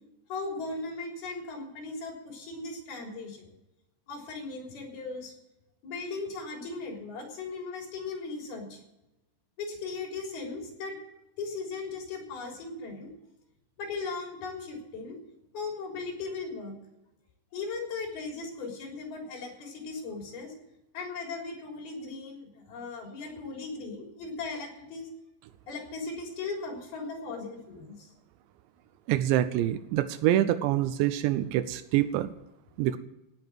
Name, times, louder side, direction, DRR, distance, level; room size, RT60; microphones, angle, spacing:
voice 1, 0.3-3.5 4.1-5.3 5.8-8.8 9.6-10.9 11.4-13.1 13.8-15.2 15.5-16.8 17.5-20.5 20.9-25.1 25.7-28.1, left 3 dB, 60° left, 1 dB, 5.5 m, -37 dB
voice 2, 29.1-32.3 32.8-33.0, right 13 dB, 90° right, 11 dB, 3.0 m, -26 dB
17.5 x 7.2 x 7.7 m, 0.93 s
omnidirectional pair, 5.0 m